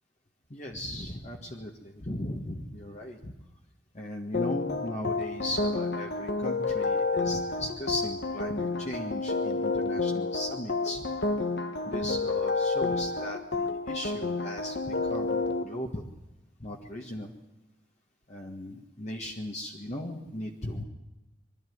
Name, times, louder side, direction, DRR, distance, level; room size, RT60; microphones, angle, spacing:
voice 1, 0.5-3.3 3.9-11.1 11.8-16.0 16.6-17.3 18.3-20.8, left 1 dB, 40° left, 0 dB, 1.7 m, -37 dB
sound 1, 4.3-15.6, left 3 dB, 60° left, 1.2 m, -30 dB
23.5 x 13.0 x 9.5 m, 1.0 s
head